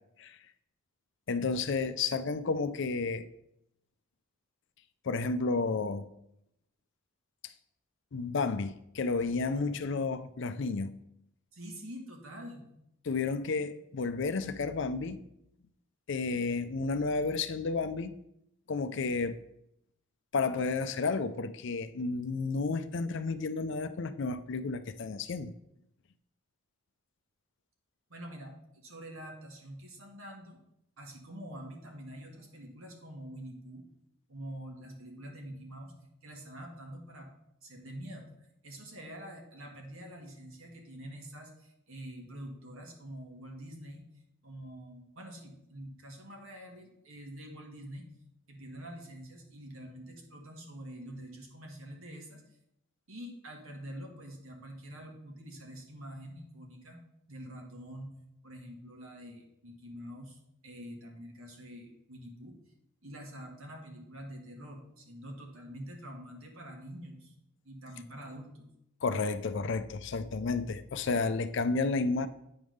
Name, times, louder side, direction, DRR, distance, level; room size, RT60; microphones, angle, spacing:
voice 1, 1.3-3.3 5.0-6.1 8.1-11.0 13.0-15.2 16.1-18.1 18.7-19.4 20.3-25.5 69.0-72.3, left 4 dB, 55° left, 0.4 m, -31 dB
voice 2, 11.5-12.7 28.1-30.6 31.0-33.8 34.3-36.0 36.2-37.3 37.6-38.3 38.6-44.1 44.4-48.1 48.5-52.4 53.1-57.0 57.3-58.1 58.4-62.6 63.0-67.3 67.6-68.7, equal, 70° right, 1.6 m, -46 dB
8.7 x 3.6 x 6.3 m
head